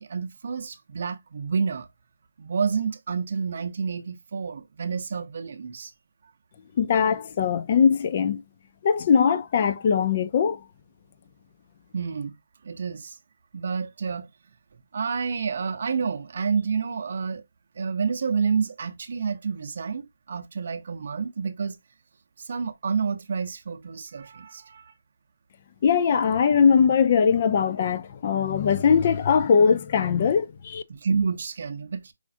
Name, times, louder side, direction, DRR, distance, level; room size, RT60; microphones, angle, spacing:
voice 1, 0.0-1.9 2.4-5.9 11.9-12.4 12.6-13.2 13.5-14.3 14.7-17.4 17.8-21.8 22.4-24.9 30.9-32.1, right 5 dB, 55° right, 0.6 m, -29 dB
voice 2, 6.8-8.4 8.8-10.6 25.8-30.8, left 6 dB, 40° left, 0.4 m, -21 dB
4.9 x 2.4 x 2.5 m
figure-of-eight pair, 155°, 0 cm